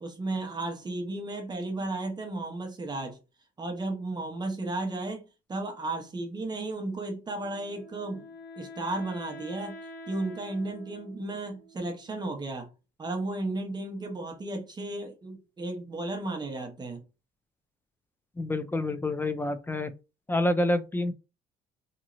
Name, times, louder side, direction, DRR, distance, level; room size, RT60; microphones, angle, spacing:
voice 1, 0.0-3.2 3.6-8.3 8.6-9.8 10.1-12.7 13.0-17.0, right 2 dB, 25° right, 0.8 m, -34 dB
Wind instrument woodwind instrument, 7.4-12.5, left 1 dB, 80° left, 1.1 m, -47 dB
voice 2, 18.4-19.9 20.3-21.1, left 1 dB, 10° left, 0.3 m, -27 dB
2.9 x 2.7 x 2.5 m
cardioid pair, 110°, 17 cm